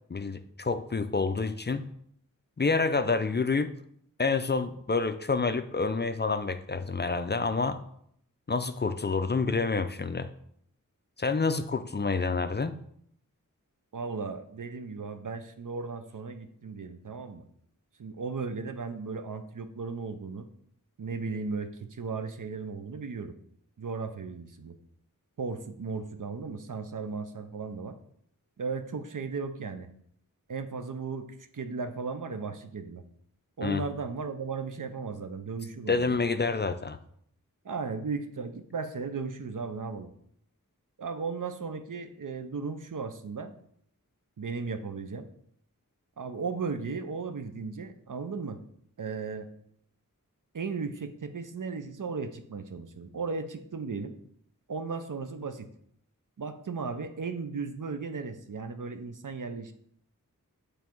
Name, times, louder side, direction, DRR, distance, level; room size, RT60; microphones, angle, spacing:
voice 1, 0.1-1.9 2.6-3.7 4.2-7.8 8.5-10.3 11.2-12.8 33.6-33.8 35.9-37.0, left 4 dB, 30° left, 11 dB, 0.4 m, -28 dB
voice 2, 13.9-17.4 18.0-20.5 21.0-23.3 23.8-24.7 25.4-28.0 28.6-29.9 30.5-31.3 31.5-33.0 33.6-36.2 37.6-40.1 41.0-43.5 44.4-45.3 46.2-48.6 49.0-49.5 50.5-54.1 54.7-55.7 56.4-59.7, right 4 dB, 65° right, 8 dB, 0.7 m, -36 dB
7.3 x 3.4 x 4.5 m, 0.68 s
wide cardioid pair, 40°, 33 cm